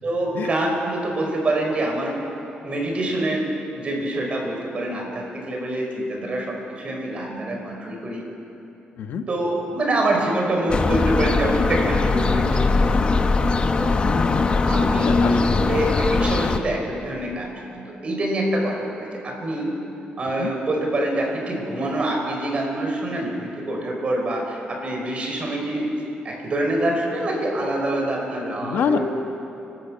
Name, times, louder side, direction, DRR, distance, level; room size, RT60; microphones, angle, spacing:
voice 1, 0.0-2.1 2.6-3.5 3.7-8.2 9.3-12.7 13.8-14.0 14.7-19.0 19.2-19.7 20.2-25.9 26.2-29.0, right 1 dB, 40° right, 1 dB, 5.0 m, -25 dB
sound 1, 10.7-16.6, left 3 dB, 35° left, 1.1 m, -20 dB
voice 2, 14.0-14.6 15.0-15.5 20.4-20.5 28.6-29.0, left 7 dB, 80° left, 6 dB, 1.4 m, -26 dB
29.5 x 13.0 x 8.8 m, 2.9 s
cardioid pair, 125°, 3 cm